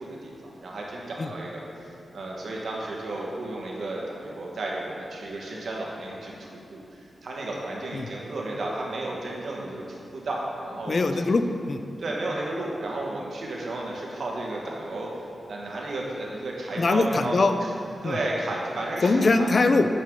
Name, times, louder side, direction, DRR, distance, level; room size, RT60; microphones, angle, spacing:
voice 1, 0.0-11.0 12.0-15.2 15.5-17.7 18.0-19.5, right 2 dB, 60° right, -3 dB, 1.2 m, -33 dB
voice 2, 10.9-11.8 16.8-17.5 18.0-18.2 19.0-19.9, left 3 dB, 40° left, 8 dB, 0.4 m, -22 dB
9.0 x 6.7 x 3.6 m, 2.5 s
wide cardioid pair, 155°, 0 cm